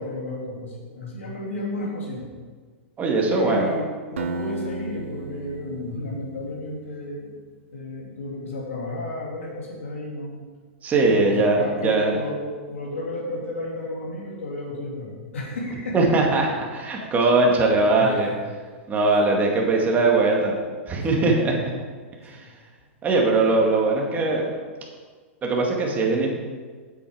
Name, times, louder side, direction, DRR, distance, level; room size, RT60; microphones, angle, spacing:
voice 1, 0.0-2.3 3.3-7.3 7.7-10.4 11.1-12.4 12.7-16.1 17.0-17.1 18.0-18.4 21.0-21.4 22.3-22.4 23.5-23.6, left 2 dB, 90° left, -3 dB, 2.8 m, -32 dB
voice 2, 3.0-3.7 10.8-12.2 15.9-18.3 18.9-20.6 20.9-21.6 22.2-22.4 23.0-24.5 25.4-26.3, right 3 dB, 25° right, -1 dB, 2.1 m, -20 dB
Acoustic guitar, 4.2-7.2, right 2 dB, 85° right, 0.6 m, -34 dB
8.3 x 8.0 x 4.9 m, 1.5 s
hypercardioid pair, 125°, 7 cm